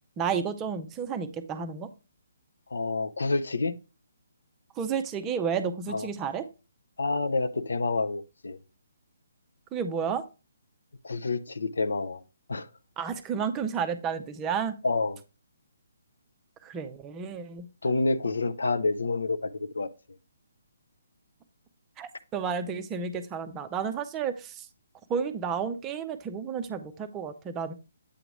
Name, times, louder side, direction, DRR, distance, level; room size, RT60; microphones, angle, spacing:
voice 1, 0.2-1.9 4.8-6.5 9.7-10.2 13.0-14.8 16.6-17.7 22.0-24.7 25.1-27.7, right 6 dB, 15° right, 0.5 m, -31 dB
voice 2, 2.7-3.7 5.9-6.1 7.0-8.6 11.0-12.2 12.5-12.7 14.8-15.2 17.8-19.9, left 3 dB, 65° left, 0.5 m, -28 dB
8.4 x 2.9 x 4.7 m
figure-of-eight pair, 135°, 0 cm